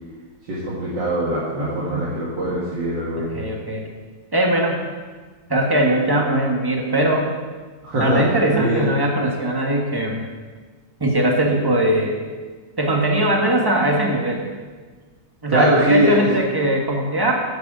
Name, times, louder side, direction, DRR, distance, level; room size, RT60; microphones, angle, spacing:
voice 1, 0.5-3.4 7.8-8.2 8.5-8.9 15.5-16.3, right 1 dB, 85° right, -7 dB, 2.6 m, -21 dB
voice 2, 1.5-2.1 3.2-3.8 4.3-4.8 5.5-7.3 8.0-10.2 11.0-12.2 12.8-14.4 15.4-17.3, right 1 dB, 15° right, 0 dB, 1.5 m, -20 dB
8.2 x 8.1 x 7.6 m, 1.4 s
omnidirectional pair, 1.9 m